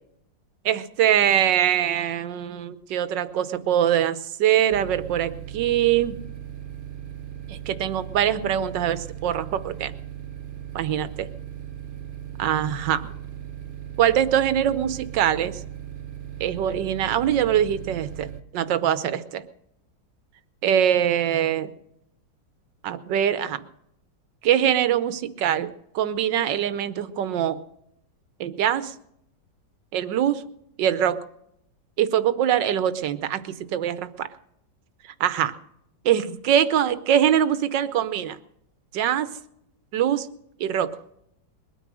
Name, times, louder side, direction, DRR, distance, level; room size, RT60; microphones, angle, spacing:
voice 1, 0.6-6.2 7.5-9.9 10.7-11.3 12.4-13.1 14.0-15.5 16.4-19.4 20.6-21.7 22.8-23.6 24.4-27.6 28.4-28.9 29.9-30.4 30.8-31.2 32.0-34.3 35.2-35.5 36.0-38.4 38.9-39.3 39.9-40.3 40.6-40.9, right 10 dB, 80° right, 14 dB, 1.5 m, -23 dB
sound 1, 4.7-18.4, right 9 dB, 35° right, 1.1 m, -38 dB
21.5 x 9.3 x 6.3 m, 0.75 s
omnidirectional pair, 2.0 m